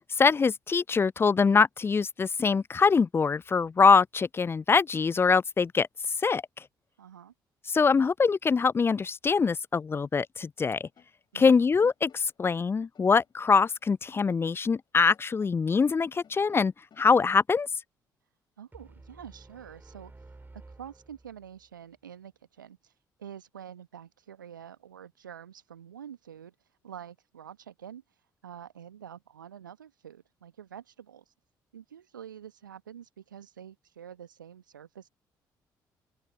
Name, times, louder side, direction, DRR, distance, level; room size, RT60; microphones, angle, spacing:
voice 1, 0.2-5.9 6.2-6.4 7.7-10.9 11.3-17.7, left 5 dB, 25° left, 0.3 m, -23 dB
voice 2, 7.0-7.3 11.3-11.6 18.6-20.1 20.8-22.9 23.2-26.5 26.8-28.0 28.4-31.2 31.7-35.1, right 9 dB, 80° right, 1.4 m, -47 dB
sound 1, 10.9-14.9 15.1-17.2, left 8 dB, 45° left, 7.0 m, -64 dB
sound 2, 18.7-21.8, right 2 dB, 20° right, 3.6 m, -52 dB
open air
figure-of-eight pair, 45°, 10 cm